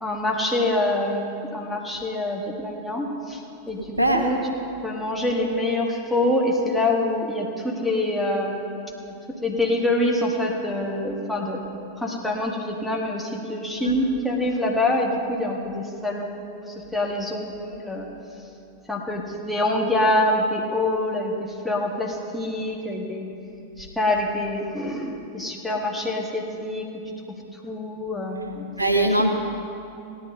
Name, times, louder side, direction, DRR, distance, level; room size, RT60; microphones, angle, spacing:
voice 1, 0.0-3.4 3.7-3.8 4.1-4.5 4.8-8.8 9.0-9.1 9.4-11.6 12.0-18.1 18.9-23.3 23.8-26.9 27.6-28.7 28.9-29.1, left 1 dB, 5° left, -2 dB, 1.7 m, -25 dB
voice 2, 28.8-29.3, right 1 dB, 85° right, 4 dB, 1.0 m, -20 dB
17.5 x 11.0 x 3.9 m, 2.6 s
figure-of-eight pair, 90°, 0 cm